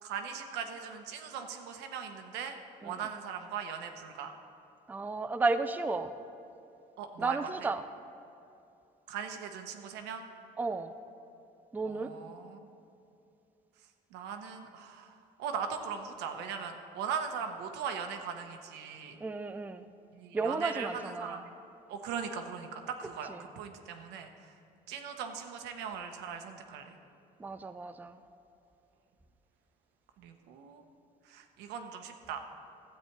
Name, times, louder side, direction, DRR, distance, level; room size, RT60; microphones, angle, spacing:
voice 1, 0.0-2.5 2.8-4.3 7.0-7.7 9.1-10.2 11.8-12.6 14.1-15.1 15.4-19.2 20.1-21.5 21.9-24.5 24.9-27.0 30.2-30.8 31.3-32.4, right 7 dB, 90° right, 5 dB, 1.0 m, -39 dB
voice 2, 4.9-6.1 7.2-7.8 10.6-10.9 11.7-12.1 19.2-19.8 20.3-21.4 23.3-23.4 27.4-28.2, right 3 dB, 10° right, 10 dB, 0.4 m, -33 dB
12.5 x 8.5 x 4.6 m, 2.7 s
cardioid pair, 110°, 17 cm